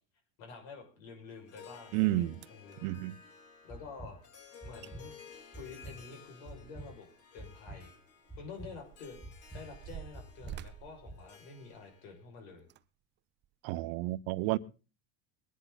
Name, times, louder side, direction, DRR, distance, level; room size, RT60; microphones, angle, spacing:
voice 1, 0.4-2.9 3.6-4.2 4.6-5.1 5.5-7.1 7.3-7.9 8.4-9.2 9.5-12.7 14.4-14.6, left 4 dB, 80° left, 6.6 m, -49 dB
Harp, 1.3-12.2, left 6 dB, 50° left, 3.6 m, -56 dB
sound 1, 1.9-2.0 2.3-2.8 4.5-4.6 4.8-4.9 5.3-7.1 7.4-7.5 8.2-12.0 12.6-12.8 13.4-13.5, right 11 dB, 35° right, 0.6 m, -50 dB
voice 2, 1.9-2.4 2.8-3.2 13.6-14.6, right 17 dB, 70° right, 0.8 m, -31 dB
sound 2, 3.7-4.1 4.6-5.0 5.5-5.9 6.4-6.9 7.4-7.8 8.3-8.7 9.2-9.6 10.1-10.5 11.0-11.2, right 1 dB, ahead, 1.8 m, -46 dB
21.0 x 10.5 x 4.2 m
supercardioid pair, 130°, 31 cm